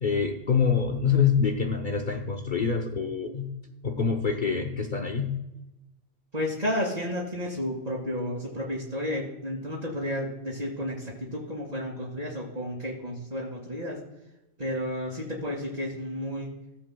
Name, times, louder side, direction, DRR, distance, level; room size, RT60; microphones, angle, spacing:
voice 1, 0.0-3.5 3.8-5.4, left 6 dB, 45° left, 2 dB, 0.8 m, -26 dB
voice 2, 6.3-14.0 14.6-16.5, equal, 35° right, -7 dB, 2.3 m, -32 dB
17.5 x 7.7 x 2.2 m, 0.94 s
omnidirectional pair, 1.3 m